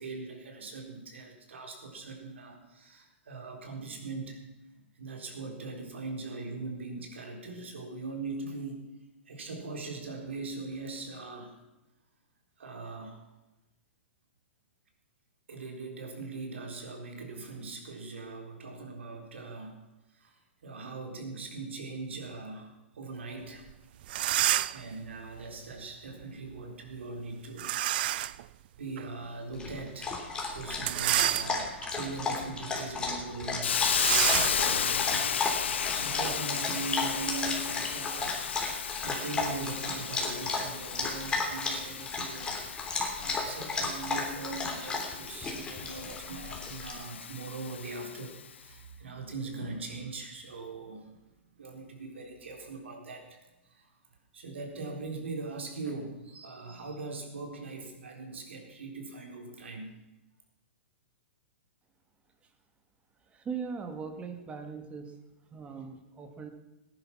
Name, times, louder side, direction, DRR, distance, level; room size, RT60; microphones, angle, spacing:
voice 1, 0.0-4.4 4.7-8.8 9.3-11.6 12.6-13.3 15.5-19.8 20.1-23.6 24.6-27.8 28.8-38.5 39.0-42.5 43.2-51.2 51.6-53.4 53.6-53.9 54.3-60.0, right 3 dB, 70° right, 3 dB, 3.9 m, -41 dB
sound 1, 23.7-23.8 24.0-24.9 27.6-28.4 29.0-29.1 30.7-31.9 32.4-32.6 32.9-33.0 33.9-36.4, right 14 dB, 50° right, 0.5 m, -29 dB
Dog, 29.5-46.9, left 3 dB, 15° left, 3.2 m, -34 dB
Hiss, 33.6-48.4, left 8 dB, 70° left, 0.7 m, -34 dB
voice 2, 63.3-65.1 65.5-66.5, right 5 dB, 20° right, 7 dB, 1.9 m, -39 dB
18.0 x 10.5 x 6.0 m, 1.0 s
hypercardioid pair, 115°, 6 cm